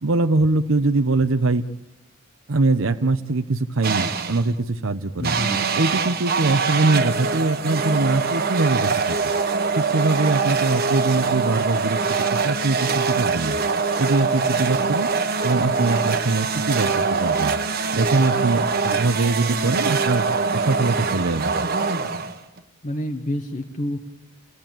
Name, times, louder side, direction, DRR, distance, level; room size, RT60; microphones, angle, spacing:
voice 1, 0.0-1.6 2.5-5.4 5.7-9.2 9.7-12.0 12.4-13.6 14.0-15.1 15.4-17.5 17.9-18.7 18.9-20.2 20.5-21.6, right 3 dB, 70° right, 7 dB, 0.8 m, -22 dB
sound 1, 3.8-4.5 5.2-22.6, right 4 dB, 50° right, 1.4 m, -23 dB
voice 2, 5.2-5.6 18.8-19.0 22.8-24.0, left 1 dB, 40° left, 4 dB, 1.3 m, -28 dB
29.0 x 18.5 x 9.0 m, 0.99 s
head